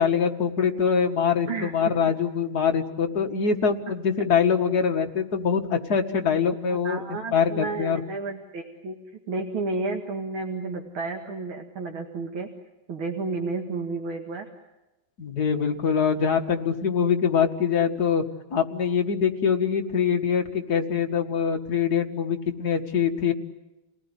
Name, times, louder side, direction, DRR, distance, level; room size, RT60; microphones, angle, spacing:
voice 1, 0.0-7.0 7.3-8.0 15.2-18.2 18.5-23.3, left 6 dB, 50° left, 4 dB, 2.2 m, -24 dB
voice 2, 6.7-12.5 12.9-14.5, right 3 dB, 85° right, 1 dB, 2.9 m, -32 dB
29.0 x 19.0 x 9.9 m, 1.0 s
omnidirectional pair, 2.2 m